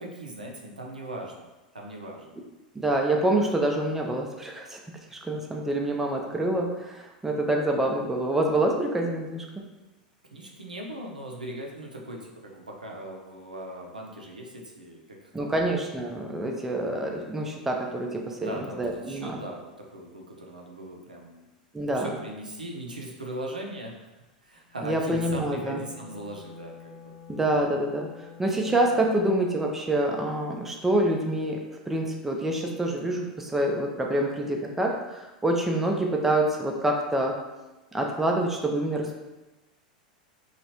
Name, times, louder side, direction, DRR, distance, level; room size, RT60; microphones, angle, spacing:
voice 1, 0.0-2.4 10.3-15.6 18.4-21.5 21.9-24.1 24.4-27.1, right 1 dB, 80° right, 0 dB, 0.5 m, -39 dB
voice 2, 2.8-4.8 5.1-9.5 15.3-19.4 21.7-22.1 24.8-25.8 27.3-28.1 28.4-37.4 37.9-39.2, right 1 dB, 5° right, 1 dB, 0.4 m, -26 dB
Wind instrument woodwind instrument, 24.7-29.8, left 7 dB, 85° left, 0.6 m, -48 dB
3.0 x 2.4 x 2.9 m, 1.1 s
figure-of-eight pair, 85°, 4 cm